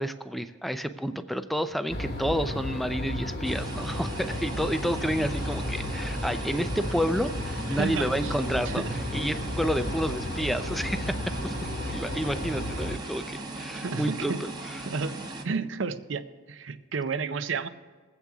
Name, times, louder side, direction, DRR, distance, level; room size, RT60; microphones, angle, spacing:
voice 1, 0.0-8.8 9.1-11.2 11.4-11.5 11.9-14.3, equal, ahead, 10 dB, 0.4 m, -30 dB
sound 1, 1.9-13.0, left 1 dB, 50° left, 1.2 m, -33 dB
sound 2, 3.4-15.4, right 2 dB, 20° right, 0.9 m, -38 dB
voice 2, 7.7-8.3 8.7-9.0 13.7-14.4 14.9-15.1 15.4-16.2 16.5-17.7, right 5 dB, 65° right, 12 dB, 0.6 m, -31 dB
21.5 x 8.3 x 3.5 m, 1.5 s
head